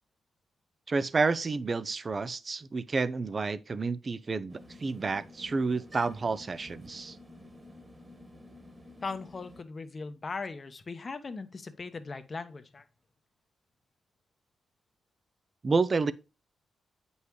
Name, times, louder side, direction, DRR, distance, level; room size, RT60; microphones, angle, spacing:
voice 1, 0.9-7.2 15.6-16.1, right 4 dB, 40° right, 0.6 m, -30 dB
sound 1, 4.5-9.6, left 1 dB, 20° right, 1.6 m, -51 dB
voice 2, 9.0-12.9, left 4 dB, 40° left, 1.0 m, -39 dB
8.1 x 5.4 x 3.1 m
cardioid pair, 95°, 0 cm